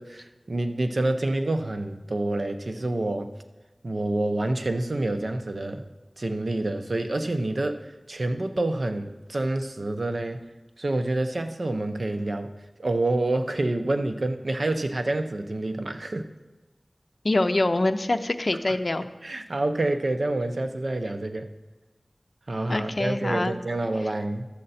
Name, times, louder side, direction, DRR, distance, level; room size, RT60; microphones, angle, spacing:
voice 1, 0.0-3.3 3.8-5.9 6.2-10.4 10.8-12.5 12.8-16.3 18.7-18.8 19.2-21.5 22.5-24.5, right 2 dB, 70° right, 7 dB, 0.7 m, -27 dB
voice 2, 17.2-19.0 22.7-23.6, left 2 dB, 60° left, 8 dB, 0.5 m, -24 dB
11.5 x 7.7 x 4.2 m, 1.2 s
wide cardioid pair, 60°, 0 cm